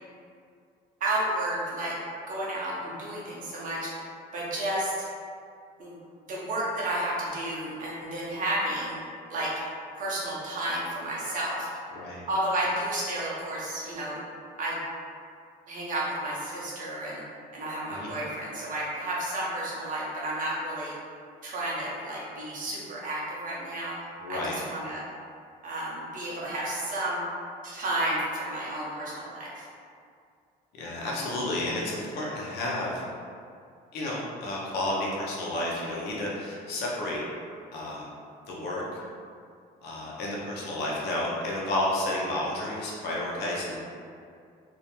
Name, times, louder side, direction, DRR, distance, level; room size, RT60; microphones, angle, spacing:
voice 1, 1.0-2.0 2.3-4.0 4.3-5.1 5.8-6.0 6.2-8.9 9.3-9.5 9.9-11.8 12.3-14.2 14.6-14.8 15.7-17.2 17.5-20.9 21.4-24.0 24.3-25.0 25.6-27.2 27.6-29.6, right 1 dB, 50° right, -5 dB, 0.8 m, -31 dB
voice 2, 11.9-12.3 17.9-18.1 24.2-24.6 30.7-33.0 33.9-37.2 37.7-38.1 38.5-39.0 39.8-43.8, left 1 dB, 75° left, -4 dB, 0.7 m, -31 dB
2.5 x 2.1 x 2.9 m, 2.3 s
cardioid pair, 110°, 17 cm